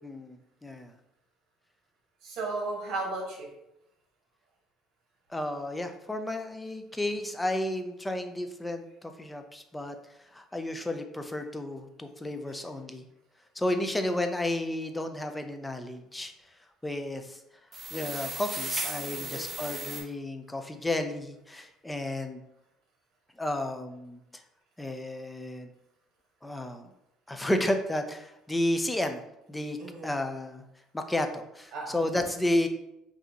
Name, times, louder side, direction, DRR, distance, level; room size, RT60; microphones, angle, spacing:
voice 1, 0.0-0.9 5.3-10.0 10.3-13.1 13.6-16.3 16.8-17.4 17.9-22.4 23.4-24.2 24.8-25.7 26.4-26.8 27.3-29.2 29.5-29.8 30.0-30.6 30.9-32.7, left 1 dB, 10° left, 6 dB, 0.4 m, -32 dB
voice 2, 2.2-3.5 19.1-19.5 29.8-30.1 31.7-32.2, right 2 dB, 55° right, -3 dB, 1.4 m, -35 dB
sound 1, 17.7-20.0, right 2 dB, 15° right, 1.0 m, -35 dB
5.0 x 2.6 x 2.8 m, 0.85 s
cardioid pair, 130°, 0 cm